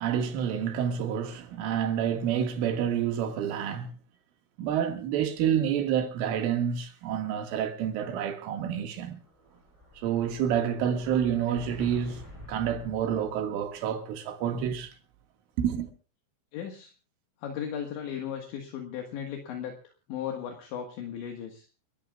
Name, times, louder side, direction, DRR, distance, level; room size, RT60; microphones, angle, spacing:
voice 1, 0.0-3.9 4.6-9.2 10.0-12.2 12.5-14.9 15.6-15.9, right 9 dB, 75° right, 4.4 m, -28 dB
Explosion, 9.1-13.8, left 1 dB, 5° right, 6.7 m, -48 dB
voice 2, 16.5-16.9 17.4-21.7, left 8 dB, 65° left, 3.7 m, -37 dB
29.5 x 14.5 x 2.4 m
omnidirectional pair, 5.9 m